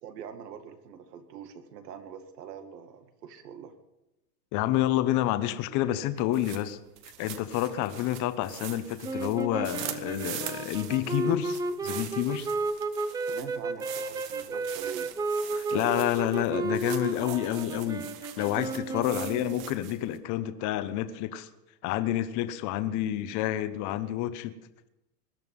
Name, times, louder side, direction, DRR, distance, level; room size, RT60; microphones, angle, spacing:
voice 1, 0.0-3.8 13.3-15.1 15.7-16.1 17.2-17.7, right 8 dB, 85° right, 8 dB, 2.3 m, -43 dB
voice 2, 4.5-6.8 7.2-12.5 15.5-18.1 18.4-21.5 21.8-24.5, left 13 dB, 40° left, 10 dB, 1.2 m, -29 dB
sound 1, 6.2-20.2, right 12 dB, 55° right, 1.8 m, -43 dB
sound 2, 9.0-19.8, right 3 dB, 10° right, 0.5 m, -33 dB
21.0 x 12.0 x 5.5 m, 0.94 s
supercardioid pair, 135°, 47 cm